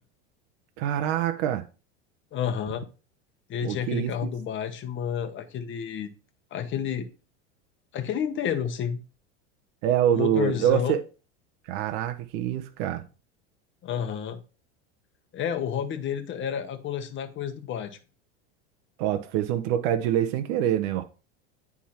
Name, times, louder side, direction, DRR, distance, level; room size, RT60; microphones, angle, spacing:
voice 1, 0.8-1.6 3.6-4.3 9.8-11.0 11.7-13.0 19.0-21.0, right 11 dB, 65° right, 0.9 m, -25 dB
voice 2, 2.3-2.8 3.5-6.1 6.5-7.1 7.9-9.0 10.1-11.0 13.8-14.4 15.3-18.0, left 8 dB, 35° left, 1.1 m, -30 dB
9.2 x 3.6 x 4.3 m
supercardioid pair, 120°, 36 cm